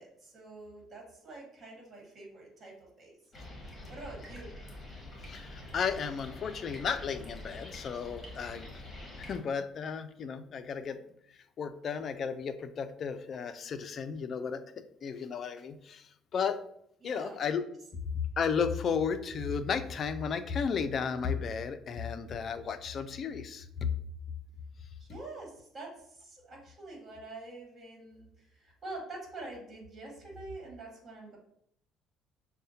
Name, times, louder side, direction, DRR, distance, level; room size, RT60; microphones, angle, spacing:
voice 1, 0.0-3.1 3.6-4.5 17.0-17.6 25.0-31.4, right 2 dB, 35° right, -1 dB, 1.5 m, -46 dB
sound 1, 3.3-9.4, left 1 dB, 20° left, 1.3 m, -46 dB
voice 2, 5.2-8.7 9.2-11.0 11.6-16.6 17.0-17.6 18.4-23.9, left 6 dB, 50° left, 10 dB, 0.3 m, -34 dB
6.3 x 2.1 x 2.7 m, 0.72 s
cardioid pair, 100°, 0 cm